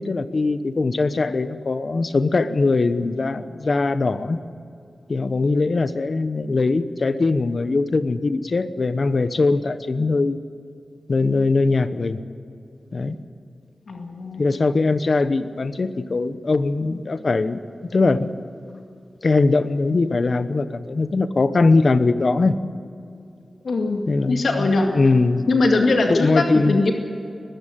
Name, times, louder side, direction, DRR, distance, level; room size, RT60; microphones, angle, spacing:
voice 1, 0.0-4.4 5.1-10.4 11.1-12.2 12.9-13.2 14.4-17.6 17.9-18.3 19.2-22.6 24.1-24.7 24.9-25.5 26.1-26.8, left 3 dB, 50° left, 12 dB, 1.0 m, -21 dB
voice 2, 13.9-14.5 23.6-24.9 25.5-26.9, left 3 dB, 85° left, 2 dB, 2.2 m, -21 dB
21.0 x 15.0 x 9.2 m, 2.5 s
wide cardioid pair, 110°, 0 cm